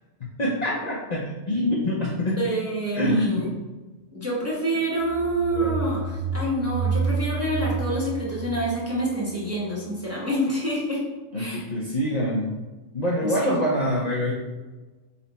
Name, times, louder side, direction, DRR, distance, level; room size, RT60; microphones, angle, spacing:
voice 1, 0.2-2.4 2.9-3.6 5.5-5.7 11.3-12.5 12.9-14.3, left 1 dB, 50° left, -4 dB, 0.5 m, -25 dB
voice 2, 2.4-3.5 4.1-11.0 11.4-11.7 13.2-13.7, right 1 dB, 15° right, -7 dB, 0.7 m, -27 dB
sound 1, 5.0-9.5, right 5 dB, 65° right, 0.5 m, -29 dB
4.1 x 2.1 x 3.9 m, 1.2 s
omnidirectional pair, 1.3 m